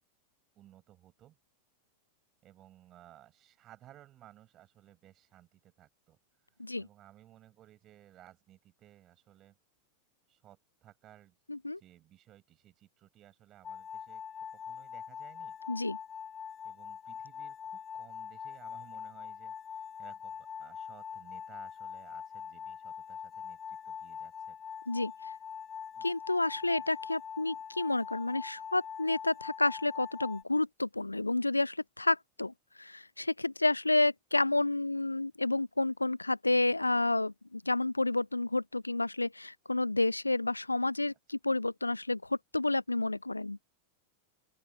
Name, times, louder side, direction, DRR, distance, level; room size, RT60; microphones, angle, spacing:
voice 1, 0.6-1.4 2.4-9.6 10.3-11.3 11.8-14.2 14.5-15.6 16.6-24.6 25.9-26.1 26.7-26.8, right 13 dB, 30° right, 8.0 m, -58 dB
voice 2, 11.5-11.8 15.7-16.0 24.9-25.1 26.0-43.6, left 2 dB, 85° left, 0.6 m, -30 dB
sound 1, 13.6-30.4, left 7 dB, 20° left, 1.2 m, -43 dB
open air
figure-of-eight pair, 90°, 0 cm